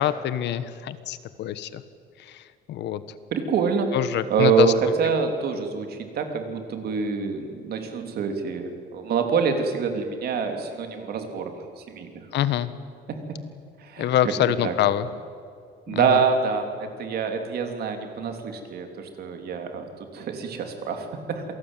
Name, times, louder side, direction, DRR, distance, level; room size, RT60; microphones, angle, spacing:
voice 1, 0.0-1.8 2.2-3.0 3.9-4.7 12.3-12.7 14.0-15.1 15.9-16.2, left 11 dB, 65° left, 14 dB, 1.2 m, -25 dB
voice 2, 3.3-3.9 4.3-4.7 5.0-12.2 13.1-13.4 13.8-14.1 14.6-14.7 15.9-16.7 17.0-19.9 20.1-21.4, right 6 dB, 55° right, 5 dB, 3.2 m, -26 dB
27.0 x 18.5 x 9.1 m, 2.2 s
cardioid pair, 165°, 19 cm